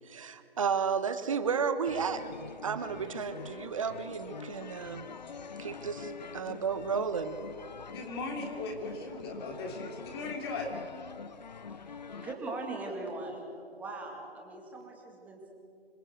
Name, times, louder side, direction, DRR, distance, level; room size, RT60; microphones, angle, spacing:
voice 1, 0.1-2.3 2.6-5.1 5.6-7.4, right 6 dB, 30° right, 11 dB, 1.3 m, -32 dB
sound 1, 1.9-12.3, left 5 dB, 45° left, 0.9 m, -45 dB
voice 2, 7.9-10.7, left 3 dB, 25° left, 1 dB, 3.3 m, -38 dB
voice 3, 11.7-15.5, right 2 dB, 5° right, 0 dB, 2.3 m, -41 dB
26.5 x 22.0 x 8.0 m, 2.4 s
figure-of-eight pair, 155°, 32 cm